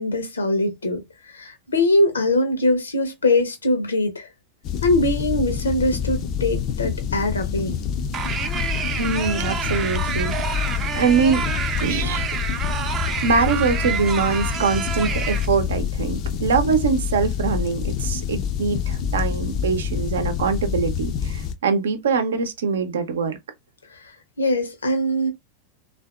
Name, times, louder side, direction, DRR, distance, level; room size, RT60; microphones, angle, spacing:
voice 1, 0.0-4.3 4.8-7.7 23.9-24.1 24.4-25.3, left 1 dB, 75° left, 0.8 m, -22 dB
sound 1, 4.6-21.5, left 8 dB, 40° left, 0.5 m, -27 dB
sound 2, 8.1-15.5, right 7 dB, 25° right, 0.5 m, -28 dB
voice 2, 9.0-11.5 11.8-12.3 13.2-23.4, right 5 dB, 65° right, 0.7 m, -23 dB
3.4 x 2.5 x 2.4 m
figure-of-eight pair, 90°, 0 cm